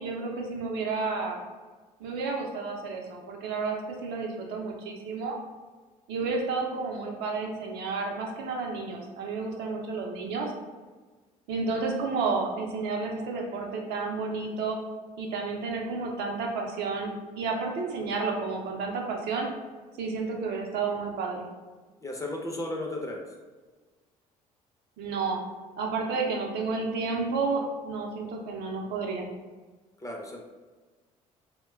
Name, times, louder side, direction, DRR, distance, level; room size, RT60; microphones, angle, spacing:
voice 1, 0.0-1.4 2.0-5.4 6.1-10.5 11.5-14.8 15.2-17.1 17.4-19.5 20.0-21.5 25.0-25.4 25.8-29.3, right 4 dB, 60° right, 0 dB, 0.5 m, -31 dB
voice 2, 22.0-23.2 30.0-30.4, left 1 dB, 15° left, 0 dB, 0.5 m, -34 dB
2.9 x 2.1 x 2.2 m, 1.3 s
hypercardioid pair, 55°, 19 cm